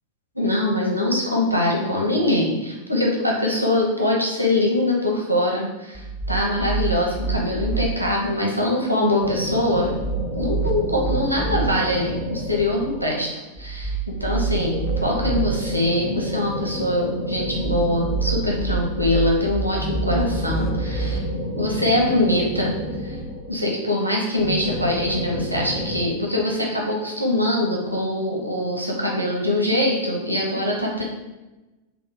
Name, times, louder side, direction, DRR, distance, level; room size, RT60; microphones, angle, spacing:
voice 1, 0.3-10.0 10.3-13.3 13.6-14.8 15.0-21.2 21.6-22.7 23.0-23.2 23.5-31.0, left 1 dB, 90° right, -2 dB, 0.7 m, -23 dB
sound 1, 5.9-7.9 9.8-11.7 13.6-15.5 17.4-21.2, right 5 dB, 15° left, 0.5 m, -27 dB
sound 2, 9.2-13.4 14.5-19.1 19.7-23.8 24.4-26.0, left 1 dB, 85° left, 1.1 m, -30 dB
3.4 x 2.3 x 3.8 m, 1.1 s
figure-of-eight pair, 90°, 0 cm